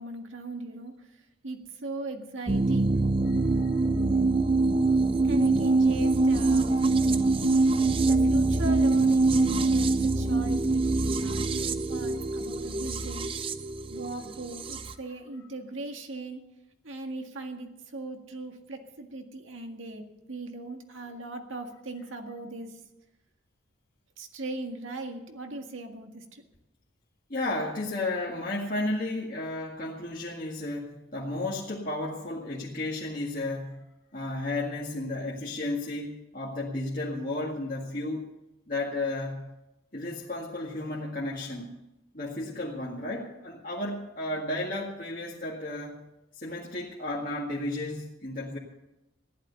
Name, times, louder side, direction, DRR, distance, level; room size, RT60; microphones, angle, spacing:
voice 1, 0.0-3.1 5.2-6.7 8.0-13.3 13.9-16.4 16.8-22.8 24.2-26.4, right 2 dB, 80° right, 4 dB, 1.8 m, -39 dB
sound 1, 2.5-14.9, right 3 dB, 25° right, 0.5 m, -24 dB
voice 2, 3.3-4.0 27.3-33.8 34.1-38.2 38.7-39.5 39.9-41.7 42.1-46.0 46.4-48.6, left 2 dB, 45° left, -4 dB, 1.9 m, -33 dB
14.5 x 11.5 x 6.9 m, 0.93 s
head